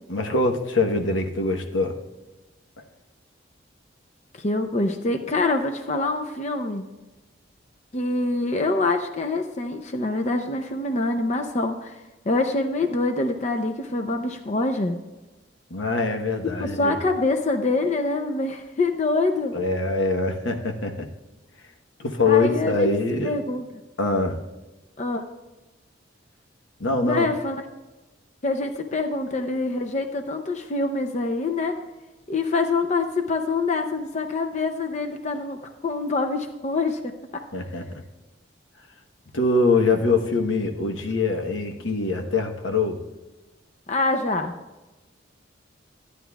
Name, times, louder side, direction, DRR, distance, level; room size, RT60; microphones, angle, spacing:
voice 1, 0.1-2.0 15.7-17.0 19.5-21.1 22.0-23.3 24.0-24.4 26.8-27.3 37.5-37.8 39.3-43.0, left 3 dB, 85° left, 4 dB, 1.1 m, -23 dB
voice 2, 4.3-6.8 7.9-15.0 16.6-19.6 22.3-22.9 23.2-23.6 25.0-25.2 27.0-27.6 28.4-31.8 32.3-37.4 43.9-44.5, left 3 dB, 35° left, 6 dB, 0.5 m, -25 dB
13.0 x 10.0 x 2.3 m, 1.1 s
head